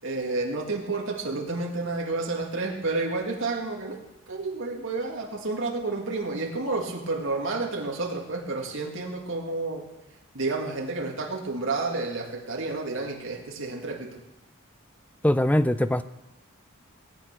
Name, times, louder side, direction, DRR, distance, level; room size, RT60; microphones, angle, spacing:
voice 1, 0.0-9.9 10.3-14.1, right 3 dB, 60° right, 2.2 m, -30 dB
voice 2, 15.2-16.0, left 1 dB, 5° left, 0.4 m, -21 dB
18.0 x 8.9 x 6.1 m
head